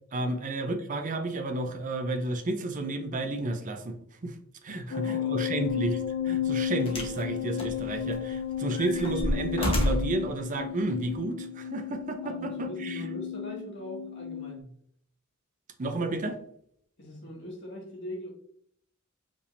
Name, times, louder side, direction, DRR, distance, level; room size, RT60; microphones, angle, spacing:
voice 1, 0.1-4.0 4.2-4.4 4.6-13.0 15.8-16.4, right 2 dB, 40° right, 6 dB, 0.5 m, -32 dB
voice 2, 4.7-5.5 12.2-14.7 17.0-18.3, equal, 60° left, -3 dB, 1.8 m, -41 dB
sound 1, 4.9-14.6, left 9 dB, 85° left, 0.4 m, -33 dB
sound 2, 5.7-5.9 6.9-7.2 7.6-8.3 8.7-10.2 11.1-11.2, equal, 30° left, 1.0 m, -30 dB
5.1 x 3.4 x 2.5 m, 0.68 s
head